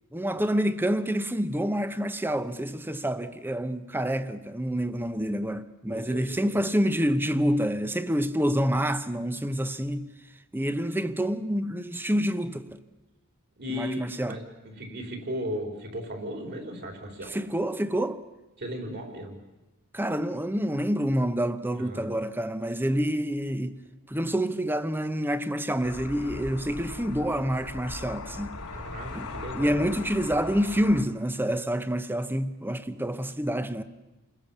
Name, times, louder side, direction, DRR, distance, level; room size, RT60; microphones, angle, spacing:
voice 1, 0.1-10.1 10.5-12.8 13.7-14.4 17.3-18.2 19.9-23.8 24.1-28.6 29.1-33.8, equal, 10° right, 0.9 m, -27 dB
voice 2, 5.9-6.2 6.5-6.6 13.6-14.4 14.6-17.4 18.6-19.4 21.8-22.1 28.7-29.8, equal, 50° right, 4.3 m, -36 dB
sound 1, 25.8-31.0, left 3 dB, 90° left, 2.3 m, -39 dB
29.0 x 20.5 x 7.3 m
head